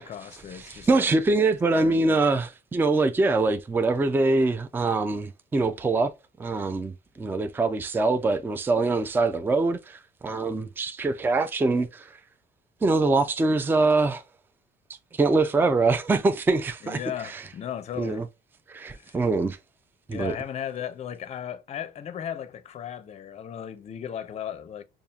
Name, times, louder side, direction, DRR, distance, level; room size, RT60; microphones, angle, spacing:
voice 1, 0.0-1.1 1.7-2.2 16.8-18.2 18.9-19.1 20.1-24.8, left 9 dB, 40° left, 0.5 m, -36 dB
voice 2, 0.5-6.1 6.4-12.1 12.8-14.2 15.1-17.4 18.0-18.3 18.7-19.6 20.1-20.3, right 3 dB, 10° right, 0.4 m, -24 dB
5.4 x 2.4 x 2.3 m
cardioid pair, 110°, 17 cm